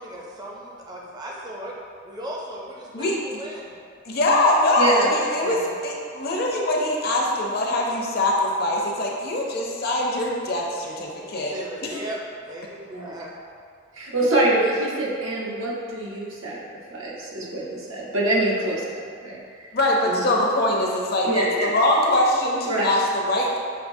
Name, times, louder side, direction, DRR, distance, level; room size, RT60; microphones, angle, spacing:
voice 1, 0.0-1.7 2.0-3.7 10.9-13.3, right 1 dB, 20° right, -3 dB, 0.5 m, -37 dB
voice 2, 4.1-11.5 11.8-12.0 19.7-23.6, left 1 dB, 50° left, -2 dB, 0.6 m, -23 dB
voice 3, 4.8-5.1 5.4-5.5 12.9-13.2 13.9-19.8 20.0-20.4 21.2-21.7 22.6-23.0, right 2 dB, 80° right, -5 dB, 0.9 m, -25 dB
6.5 x 2.7 x 2.6 m, 2.2 s
head